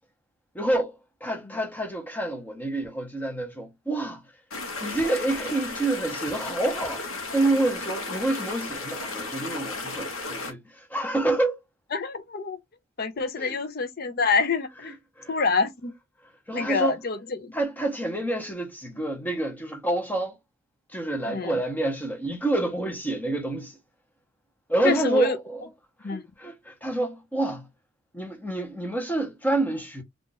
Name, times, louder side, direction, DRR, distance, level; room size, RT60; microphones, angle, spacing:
voice 1, 0.5-0.9 1.2-4.2 4.8-7.0 7.3-11.6 13.4-13.6 15.2-15.3 16.5-17.0 17.5-20.4 20.9-23.8 24.7-25.6 26.0-27.6 28.1-30.0, right 2 dB, 10° left, 0.9 m, -28 dB
sound 1, 4.5-10.5, left 3 dB, 80° left, 0.9 m, -34 dB
voice 2, 11.9-12.6 13.0-14.9 15.3-15.9 16.5-17.5 21.3-21.6 24.8-25.4 26.0-26.2, left 4 dB, 45° left, 0.6 m, -26 dB
2.5 x 2.5 x 3.9 m
head